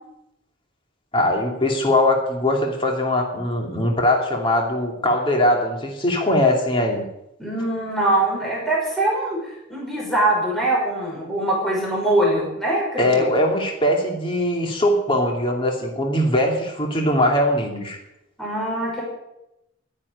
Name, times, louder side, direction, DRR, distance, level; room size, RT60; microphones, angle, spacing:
voice 1, 1.1-7.0 13.0-18.0, left 1 dB, 30° left, 0 dB, 2.7 m, -21 dB
voice 2, 7.4-9.4 9.7-13.2 18.4-19.0, right 1 dB, ahead, -5 dB, 5.5 m, -22 dB
12.0 x 10.5 x 8.3 m, 0.87 s
head